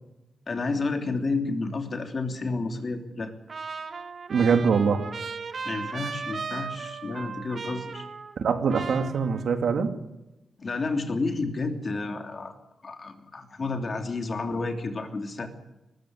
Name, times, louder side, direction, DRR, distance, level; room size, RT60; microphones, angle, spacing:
voice 1, 0.5-3.3 5.6-8.1 10.6-12.5 12.8-15.5, left 3 dB, 45° left, 6 dB, 3.1 m, -30 dB
Trumpet, 3.5-8.4 8.7-9.7, right 5 dB, 55° right, 1.7 m, -37 dB
voice 2, 4.3-5.0 8.4-9.9, right 6 dB, 80° right, 7 dB, 2.3 m, -23 dB
21.5 x 14.0 x 9.7 m, 0.95 s
cardioid pair, 90°, 0 cm